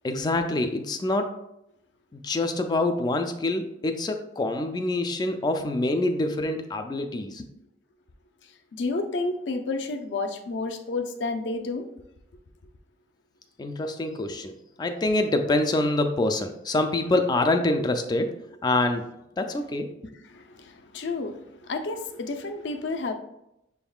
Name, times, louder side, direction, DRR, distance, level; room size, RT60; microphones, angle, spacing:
voice 1, 0.0-1.3 2.2-7.5 13.6-18.3 18.6-19.0 19.4-20.1, left 2 dB, 25° left, 6 dB, 0.3 m, -26 dB
voice 2, 8.7-11.9 17.8-17.9 20.1-23.1, left 3 dB, 75° left, 6 dB, 0.5 m, -31 dB
6.0 x 3.5 x 2.3 m, 0.84 s
head